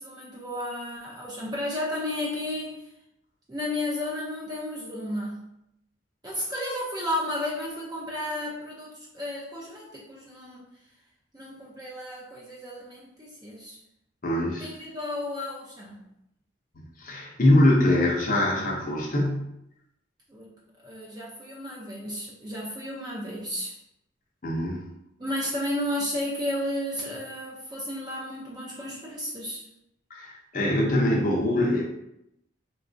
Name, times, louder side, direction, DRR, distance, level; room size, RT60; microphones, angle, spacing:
voice 1, 0.0-2.9 3.5-5.4 6.2-10.7 11.3-13.8 14.6-16.1 20.3-20.5 20.8-23.8 25.2-29.7, left 1 dB, 20° right, -5 dB, 0.5 m, -33 dB
voice 2, 14.2-14.7 17.0-19.4 24.4-24.8 30.1-31.8, left 1 dB, 45° left, -2 dB, 0.6 m, -23 dB
3.9 x 2.3 x 2.5 m, 0.82 s
head